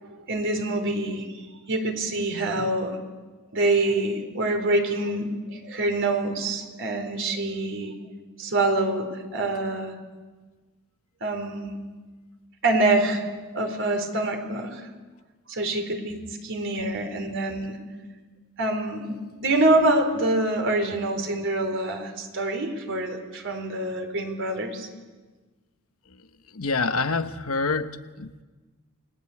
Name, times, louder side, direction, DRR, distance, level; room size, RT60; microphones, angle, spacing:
voice 1, 0.0-1.3 1.7-3.0 3.5-7.9 8.4-9.9 11.2-11.7 12.6-13.3 13.5-14.9 15.5-17.8 18.6-24.9, right 2 dB, 60° right, 5 dB, 4.2 m, -26 dB
voice 2, 26.5-28.4, left 4 dB, 70° left, 8 dB, 1.1 m, -27 dB
29.0 x 21.0 x 8.5 m, 1.3 s
head